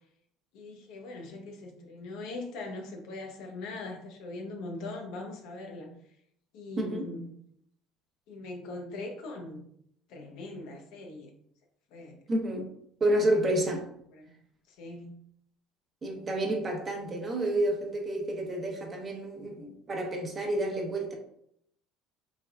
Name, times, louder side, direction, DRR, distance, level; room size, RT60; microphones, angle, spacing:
voice 1, 0.5-5.9 6.5-7.4 8.3-9.6 10.1-11.3 11.9-12.2 14.1-14.2 14.7-15.2, left 2 dB, 70° left, 2 dB, 0.7 m, -41 dB
voice 2, 6.8-7.1 12.3-12.7 13.0-13.8 16.0-21.1, right 1 dB, 35° right, 2 dB, 0.7 m, -29 dB
3.3 x 2.3 x 2.3 m, 0.70 s
supercardioid pair, 85°, 0 cm